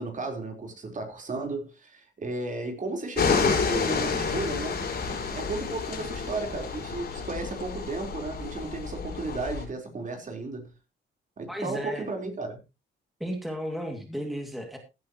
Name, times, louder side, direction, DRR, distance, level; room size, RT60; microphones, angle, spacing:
voice 1, 0.0-4.9 5.3-10.7 11.4-12.6, right 3 dB, 40° right, 4.2 m, -34 dB
sound 1, 3.2-9.6, left 5 dB, 55° left, 5.4 m, -29 dB
voice 2, 11.5-12.1 13.2-14.8, equal, ahead, 2.4 m, -34 dB
15.5 x 10.5 x 3.0 m
cardioid pair, 90°, 20 cm